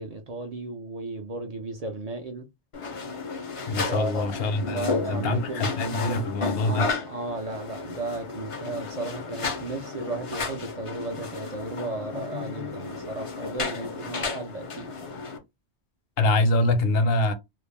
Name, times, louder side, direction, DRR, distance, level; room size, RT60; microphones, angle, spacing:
voice 1, 0.0-2.5 3.9-5.7 6.6-15.2, right 2 dB, 60° right, 0.4 m, -35 dB
sound 1, 2.7-15.4, left 4 dB, 45° left, 0.4 m, -33 dB
voice 2, 3.7-6.9 16.2-17.3, left 2 dB, 65° left, 0.8 m, -24 dB
2.3 x 2.0 x 3.1 m
omnidirectional pair, 1.1 m